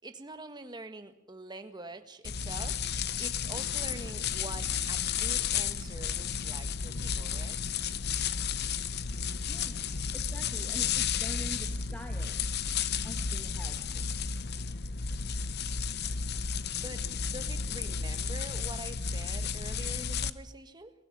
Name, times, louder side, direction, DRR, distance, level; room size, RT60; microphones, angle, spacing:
voice 1, 0.0-2.8 3.2-7.6 16.8-20.9, right 2 dB, 20° right, 8 dB, 1.6 m, -45 dB
sound 1, 2.2-20.3, left 6 dB, 50° left, 0.9 m, -33 dB
sound 2, 4.2-11.0, equal, 85° left, 2.8 m, -50 dB
voice 2, 10.1-12.4 13.0-14.1, equal, 5° left, 3 dB, 1.9 m, -45 dB
23.5 x 16.5 x 9.8 m, 0.81 s
head